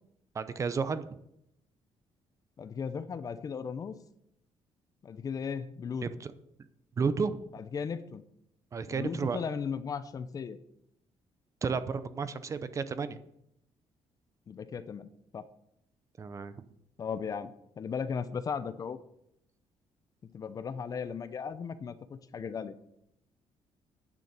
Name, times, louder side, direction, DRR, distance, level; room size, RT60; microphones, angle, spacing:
voice 1, 0.3-1.1 6.0-6.3 7.0-7.4 8.7-9.4 11.6-13.2 16.2-16.6, right 5 dB, 30° right, 12 dB, 0.7 m, -32 dB
voice 2, 2.6-4.0 5.0-6.1 7.5-8.2 8.9-10.6 14.5-15.4 17.0-19.0 20.2-22.7, left 6 dB, 35° left, 13 dB, 0.7 m, -36 dB
10.0 x 6.9 x 8.0 m, 0.78 s
cardioid pair, 155°, 11 cm